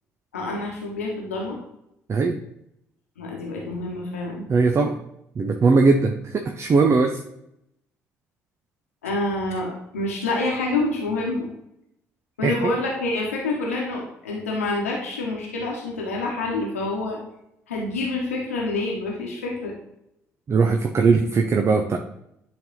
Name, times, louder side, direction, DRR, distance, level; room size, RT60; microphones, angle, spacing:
voice 1, 0.3-1.6 3.2-4.5 9.0-11.5 12.4-17.2 17.7-19.7, left 2 dB, 85° left, -2 dB, 1.1 m, -27 dB
voice 2, 4.5-5.0 5.4-7.2 12.4-12.7 20.5-22.0, right 4 dB, 40° right, 4 dB, 0.7 m, -19 dB
10.5 x 3.6 x 3.9 m, 0.80 s
figure-of-eight pair, 45°, 7 cm